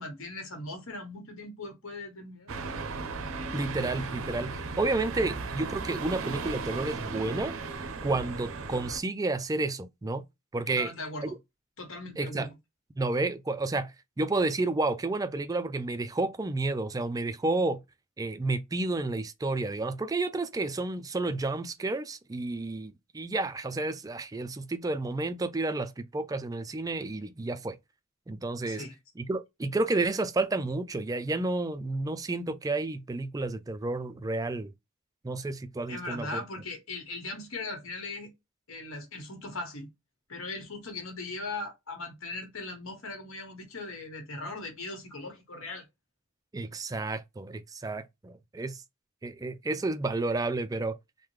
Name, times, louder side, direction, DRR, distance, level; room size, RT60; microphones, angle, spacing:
voice 1, 0.0-2.8 10.7-11.3 11.8-12.5 28.7-28.9 35.9-38.3 38.7-39.9 40.3-45.8, left 2 dB, 75° left, 1.3 m, -39 dB
sound 1, 2.5-9.0, right 4 dB, 75° right, 0.6 m, -36 dB
voice 2, 3.5-7.5 8.0-10.2 10.5-10.9 11.2-11.3 12.2-12.5 13.0-17.8 18.2-27.8 28.3-28.8 29.2-34.7 35.2-36.4 46.5-48.8 49.2-51.0, right 2 dB, 15° right, 0.3 m, -31 dB
3.5 x 2.1 x 3.1 m
head